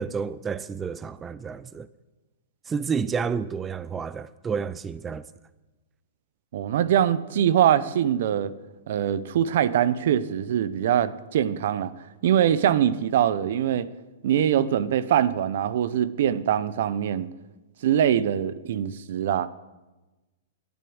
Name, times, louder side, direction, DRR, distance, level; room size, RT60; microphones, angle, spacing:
voice 1, 0.0-1.9 2.7-5.2, right 6 dB, 15° right, 0.4 m, -30 dB
voice 2, 6.5-8.5 8.9-13.9 14.2-17.3 17.8-19.5, right 10 dB, 65° right, 0.7 m, -23 dB
12.0 x 7.0 x 7.9 m
hypercardioid pair, 125°, 0 cm